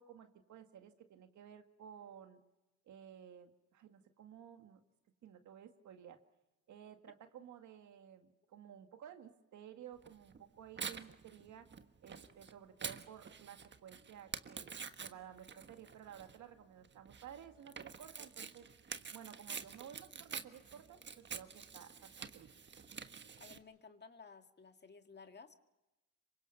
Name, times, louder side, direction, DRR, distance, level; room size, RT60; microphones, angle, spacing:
voice 1, 0.0-2.4 2.9-4.8 5.2-6.2 6.7-11.7 12.0-14.7 15.0-18.7 19.1-21.0 21.3-22.5, right 9 dB, 75° right, 7 dB, 2.0 m, -54 dB
Tearing, 10.0-23.6, right 6 dB, 35° right, 1.4 m, -48 dB
voice 2, 23.4-25.7, left 5 dB, 35° left, 7 dB, 2.0 m, -56 dB
26.5 x 24.0 x 5.8 m, 1.0 s
cardioid pair, 90°, 30 cm